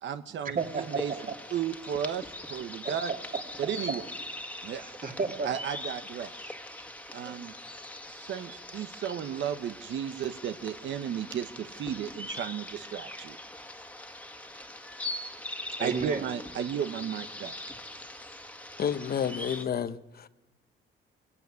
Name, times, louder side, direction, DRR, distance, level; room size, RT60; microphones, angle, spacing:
voice 1, 0.0-1.1 1.5-3.1 3.6-4.0 4.6-4.9 5.4-6.4 7.1-7.5 8.1-13.4 15.8-17.6, right 8 dB, 70° right, 1.0 m, -34 dB
voice 2, 0.5-1.3 2.8-4.0 4.7-5.5 7.2-7.4 8.5-8.6 15.8-16.3, right 5 dB, 45° right, 3.2 m, -34 dB
sound 1, 0.6-19.7, left 1 dB, 5° left, 1.8 m, -42 dB
voice 3, 18.8-20.3, left 8 dB, 50° left, 0.8 m, -30 dB
23.5 x 16.0 x 9.5 m
cardioid pair, 90°, 20 cm